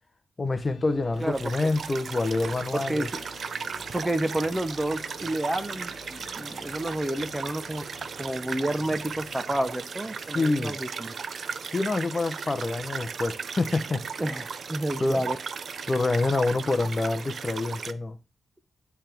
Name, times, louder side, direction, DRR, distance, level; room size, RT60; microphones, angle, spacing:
voice 1, 0.4-3.1 10.3-10.8 11.7-14.2 15.0-15.2 15.9-18.2, left 2 dB, 25° left, 0.7 m, -27 dB
sound 1, 0.5-10.4, left 5 dB, 70° left, 0.9 m, -50 dB
voice 2, 1.2-1.7 2.7-3.2 3.9-7.8 8.2-11.1 14.2-15.4, right 1 dB, 10° right, 0.6 m, -30 dB
sound 2, 1.2-17.9, right 6 dB, 55° right, 0.4 m, -36 dB
9.7 x 3.4 x 4.4 m
wide cardioid pair, 140°, 0 cm